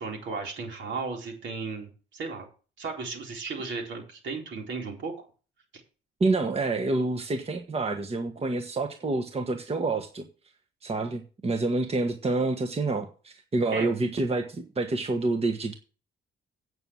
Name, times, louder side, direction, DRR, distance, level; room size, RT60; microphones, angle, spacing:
voice 1, 0.0-2.4 2.8-5.2 13.7-13.9, right 4 dB, 70° right, 1 dB, 4.1 m, -35 dB
voice 2, 6.2-10.2 10.8-15.7, right 3 dB, 30° right, 6 dB, 1.4 m, -28 dB
8.9 x 6.4 x 7.1 m, 0.36 s
cardioid pair, 90°, 20 cm